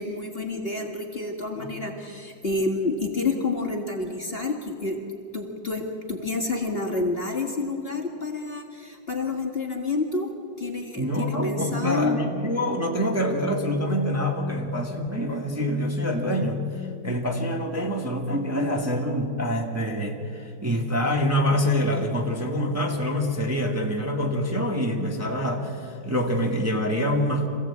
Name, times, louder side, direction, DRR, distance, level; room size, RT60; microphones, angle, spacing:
voice 1, 0.0-5.0 5.3-10.3 10.6-12.2, left 3 dB, 30° left, 1 dB, 2.0 m, -29 dB
voice 2, 11.0-16.7 17.0-27.5, equal, 10° right, 0 dB, 1.8 m, -26 dB
26.5 x 16.5 x 8.7 m, 2.4 s
omnidirectional pair, 2.2 m